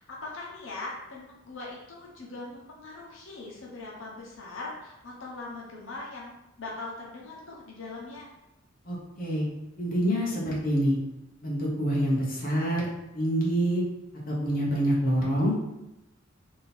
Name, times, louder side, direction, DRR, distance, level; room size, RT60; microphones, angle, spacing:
voice 1, 0.0-8.3, left 2 dB, 70° left, -3 dB, 0.9 m, -41 dB
voice 2, 8.8-9.4 9.8-11.0 11.4-12.9 13.1-13.8 14.3-15.5, equal, 45° left, -5 dB, 0.9 m, -26 dB
3.6 x 2.8 x 4.3 m, 0.92 s
head